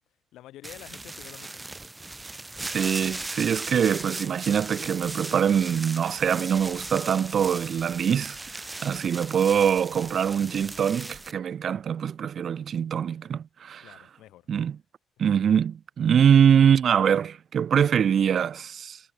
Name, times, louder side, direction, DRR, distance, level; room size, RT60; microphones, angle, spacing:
voice 1, 0.3-1.6 13.8-14.5, left 14 dB, 85° left, 3.6 m, -48 dB
sound 1, 0.6-11.3, right 2 dB, 15° right, 2.5 m, -38 dB
voice 2, 2.6-13.9 14.5-14.8 15.2-19.0, right 8 dB, 55° right, 0.5 m, -23 dB
cardioid pair, 90°, 0 cm